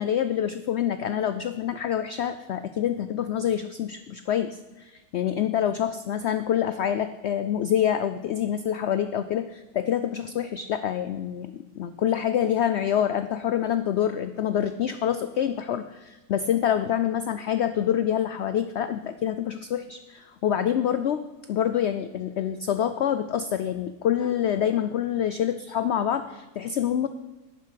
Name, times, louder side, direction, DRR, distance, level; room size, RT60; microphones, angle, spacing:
voice 1, 0.0-21.2 21.5-27.1, left 9 dB, 70° left, 11 dB, 0.6 m, -26 dB
11.5 x 9.6 x 5.8 m, 1.1 s
omnidirectional pair, 1.7 m